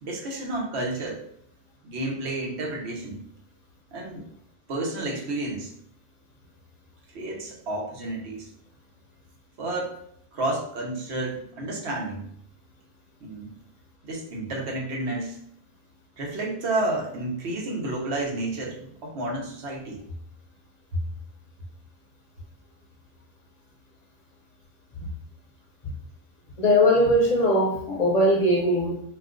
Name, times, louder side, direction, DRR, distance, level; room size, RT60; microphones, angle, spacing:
voice 1, 0.0-1.2 1.8-3.2 3.9-4.3 4.7-5.7 7.1-8.5 9.6-9.9 10.3-12.2 13.2-13.5 14.0-15.4 16.2-20.0, right 2 dB, 90° right, -1 dB, 1.1 m, -31 dB
voice 2, 26.6-29.0, left 1 dB, 50° left, -1 dB, 0.6 m, -20 dB
2.5 x 2.3 x 3.6 m, 0.68 s
omnidirectional pair, 1.1 m